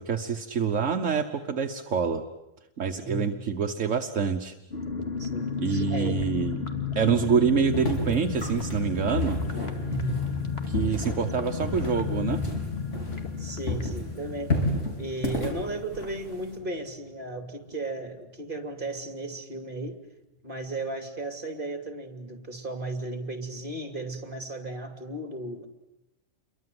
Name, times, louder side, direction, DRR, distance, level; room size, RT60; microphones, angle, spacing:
voice 1, 0.0-2.2 2.8-4.5 5.6-6.7 6.9-9.4 10.7-12.4, right 6 dB, 75° right, 5 dB, 1.5 m, -26 dB
voice 2, 2.9-3.4 5.2-6.2 9.8-10.6 10.9-11.0 13.4-14.6 15.0-20.0 20.4-25.7, right 2 dB, 40° right, 6 dB, 3.1 m, -35 dB
sound 1, 4.7-17.1 17.3-17.4 17.7-18.0, left 5 dB, 55° left, 2.6 m, -33 dB
sound 2, 7.7-13.4 13.7-16.6, left 2 dB, 70° left, 5.0 m, -31 dB
29.0 x 23.0 x 7.8 m, 0.92 s
omnidirectional pair, 1.3 m